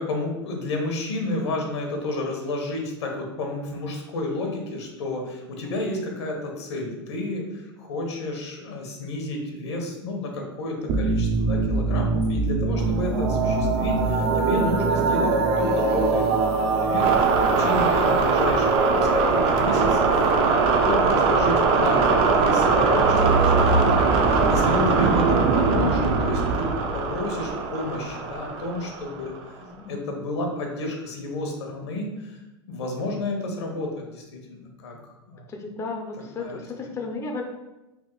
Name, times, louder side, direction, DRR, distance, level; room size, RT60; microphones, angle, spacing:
voice 1, 0.0-26.7 26.9-29.6 29.9-32.4 32.7-34.9 35.3-35.5 36.4-36.6, left 2 dB, 80° left, 2 dB, 1.0 m, -31 dB
sound 1, 10.9-29.4, right 4 dB, 45° right, 0.5 m, -21 dB
voice 2, 17.5-18.1 23.0-23.3 27.2-27.4 29.6-30.1 35.5-37.4, left 3 dB, 20° left, 2 dB, 0.5 m, -35 dB
3.5 x 2.5 x 3.8 m, 1.0 s
hypercardioid pair, 110°, 14 cm